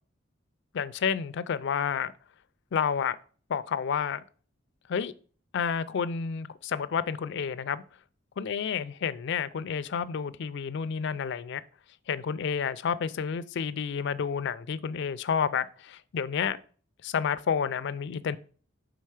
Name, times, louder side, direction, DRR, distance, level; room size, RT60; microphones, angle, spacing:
voice 1, 0.7-2.1 2.7-3.2 3.5-4.2 4.9-5.1 5.5-7.8 8.4-11.6 12.1-16.6 17.0-18.4, left 7 dB, 65° left, 0.4 m, -30 dB
5.6 x 3.9 x 4.7 m
head